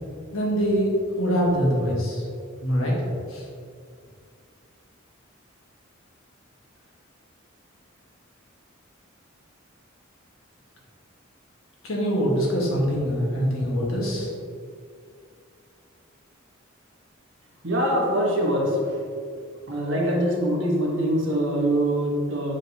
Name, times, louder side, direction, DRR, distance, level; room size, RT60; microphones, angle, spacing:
voice 1, 0.3-2.2 2.6-2.9 3.3-3.4 11.8-14.3, equal, 85° left, -3 dB, 1.6 m, -24 dB
voice 2, 17.6-19.0 19.7-22.5, right 1 dB, 65° right, -2 dB, 1.4 m, -23 dB
7.4 x 5.1 x 2.9 m, 2.2 s
head